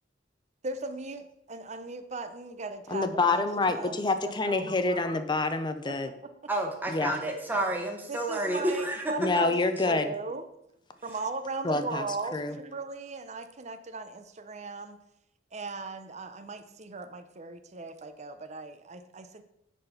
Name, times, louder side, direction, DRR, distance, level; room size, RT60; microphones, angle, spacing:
voice 1, 0.6-5.0 6.2-6.3 8.1-9.5 9.8-10.5 11.0-15.0 15.5-19.4, right 3 dB, 35° right, 9 dB, 0.7 m, -38 dB
voice 2, 2.9-6.1 6.9-7.1 9.2-10.1 11.6-12.1 12.3-12.6, left 3 dB, 25° left, 9 dB, 0.6 m, -27 dB
voice 3, 6.5-9.1, right 1 dB, 10° right, 1 dB, 1.4 m, -30 dB
9.8 x 4.2 x 5.8 m, 0.80 s
head